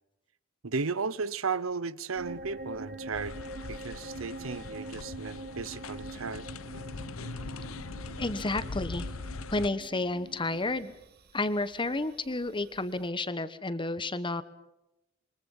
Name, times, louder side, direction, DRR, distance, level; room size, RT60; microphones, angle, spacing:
voice 1, 0.6-3.4 3.7-6.4, right 4 dB, 75° right, 0.9 m, -34 dB
sound 1, 2.1-13.1, right 2 dB, 50° right, 1.6 m, -45 dB
sound 2, 3.1-9.7, left 3 dB, 75° left, 0.9 m, -41 dB
voice 2, 8.2-9.1 9.5-10.9 11.3-14.4, left 2 dB, 25° left, 1.1 m, -31 dB
27.0 x 23.5 x 5.6 m
head